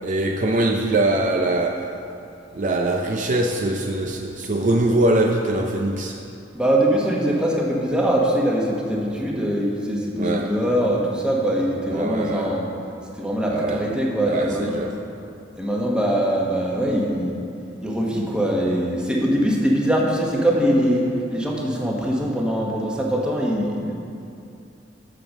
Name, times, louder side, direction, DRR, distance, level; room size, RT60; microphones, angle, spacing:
voice 1, 0.0-1.9 2.5-6.2 10.2-10.5 11.9-12.5 13.5-13.8 14.3-15.0, right 2 dB, 40° right, 2 dB, 0.5 m, -22 dB
voice 2, 6.5-12.6 13.2-14.7 15.6-17.3 17.8-21.1 21.3-23.9, right 1 dB, 5° right, -3 dB, 1.2 m, -22 dB
7.6 x 7.1 x 6.5 m, 2.6 s
head